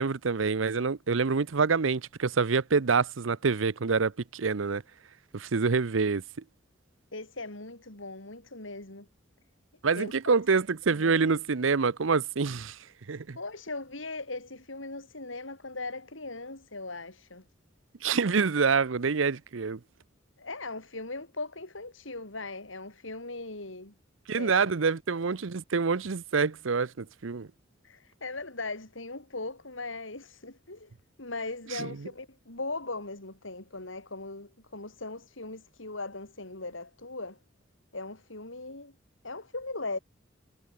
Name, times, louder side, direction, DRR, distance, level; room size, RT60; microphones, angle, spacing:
voice 1, 0.0-4.8 5.3-6.2 9.8-12.8 13.1-13.4 18.0-19.8 24.3-27.5 31.7-32.0, right 5 dB, 90° right, 0.7 m, -26 dB
voice 2, 7.1-9.1 9.9-10.3 10.9-11.3 13.4-17.4 20.4-23.9 24.3-24.7 27.8-30.9 31.2-37.4 37.9-38.9 39.2-40.0, left 3 dB, 85° left, 5.2 m, -39 dB
head